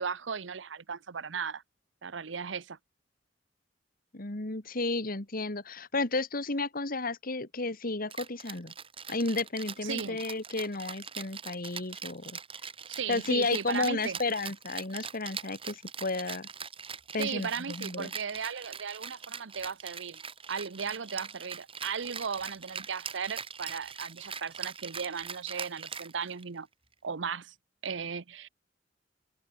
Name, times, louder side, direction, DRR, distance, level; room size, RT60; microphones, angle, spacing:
voice 1, 0.0-1.6 2.0-2.8 9.8-10.2 12.9-14.2 17.2-20.2 20.5-26.7 27.0-27.5 27.8-28.5, right 6 dB, 85° right, 0.8 m, -36 dB
voice 2, 4.1-8.7 9.1-12.4 13.1-16.5 17.1-18.1, left 3 dB, 50° left, 2.2 m, -32 dB
Rattle (instrument), 8.1-26.6, right 6 dB, 30° right, 3.8 m, -42 dB
head